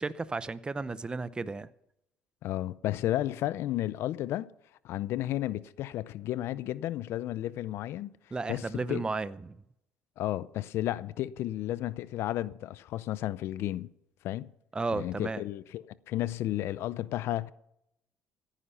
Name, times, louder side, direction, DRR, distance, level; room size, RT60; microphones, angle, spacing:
voice 1, 0.0-1.7 8.3-9.5 14.7-15.4, right 3 dB, 20° right, 0.7 m, -33 dB
voice 2, 2.4-4.5 4.8-8.1 8.5-9.0 10.2-13.9 14.2-14.5 14.9-17.5, left 14 dB, 70° left, 0.6 m, -33 dB
15.5 x 10.0 x 5.6 m
cardioid pair, 95°, 4 cm